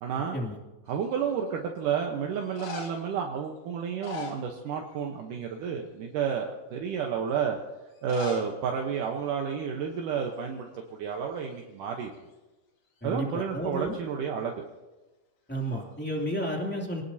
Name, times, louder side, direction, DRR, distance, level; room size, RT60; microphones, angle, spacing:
voice 1, 0.0-0.4 0.9-7.6 8.0-12.1 13.0-14.5, right 7 dB, 75° right, 1 dB, 2.6 m, -31 dB
sound 1, 0.9-1.4 2.3-3.1 3.8-5.0 5.3-5.7 6.3-6.4 7.9-8.5 8.8-8.9 9.1-9.2 10.0-10.2 10.4-11.6 15.6-16.2, left 6 dB, 55° left, 2.9 m, -42 dB
voice 2, 13.0-14.0 15.5-17.0, right 1 dB, 5° left, -1 dB, 2.1 m, -32 dB
26.5 x 19.0 x 2.8 m, 1.1 s
omnidirectional pair, 3.9 m